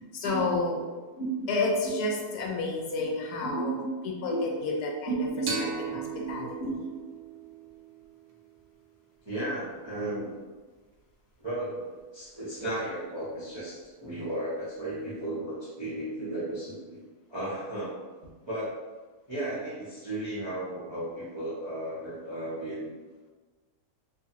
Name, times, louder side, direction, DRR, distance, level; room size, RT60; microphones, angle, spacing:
voice 1, 0.1-0.8 1.5-3.8 4.0-5.2 5.9-6.0 6.3-6.5, left 3 dB, 85° left, 0 dB, 1.1 m, -30 dB
voice 2, 1.2-1.5 1.8-1.9 3.0-3.1 3.4-4.5 5.1-5.5 5.9-6.7 9.2-10.3 11.4-17.0 17.3-18.0 18.5-18.8 19.3-22.9, right 2 dB, 35° right, -10 dB, 0.4 m, -34 dB
sound 1, 5.5-8.8, right 4 dB, 65° right, 0.9 m, -37 dB
2.6 x 2.5 x 2.8 m, 1.3 s
omnidirectional pair, 1.6 m